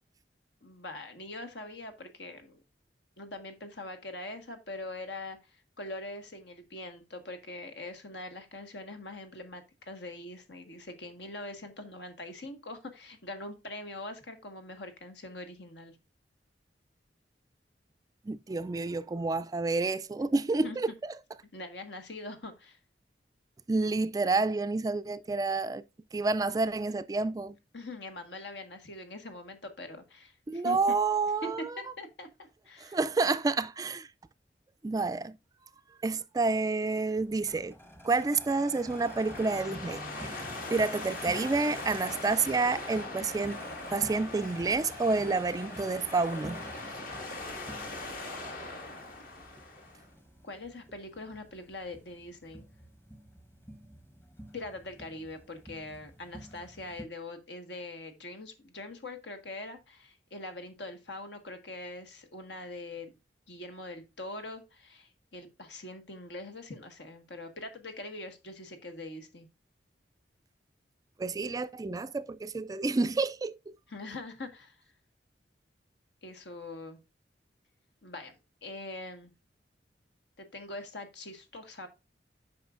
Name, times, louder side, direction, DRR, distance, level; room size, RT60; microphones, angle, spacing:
voice 1, 0.6-2.6 3.2-16.0 20.6-20.8 21.5-22.8 27.7-30.9 32.0-33.0 50.4-52.7 54.5-63.2 63.5-69.5 73.9-74.8 76.2-77.0 78.0-78.4 78.6-79.3 80.4-81.9, left 2 dB, 80° left, 1.6 m, -43 dB
voice 2, 18.2-21.2 23.7-25.8 26.1-27.6 30.5-31.8 32.8-34.1 34.8-35.4 35.9-37.8 38.0-43.6 43.9-46.6 47.1-47.2 71.2-73.8, right 3 dB, 20° right, 0.3 m, -29 dB
sound 1, 37.2-57.0, equal, 15° left, 1.0 m, -49 dB
sound 2, 38.9-50.1, left 2 dB, 55° left, 1.8 m, -41 dB
8.7 x 5.6 x 2.5 m
head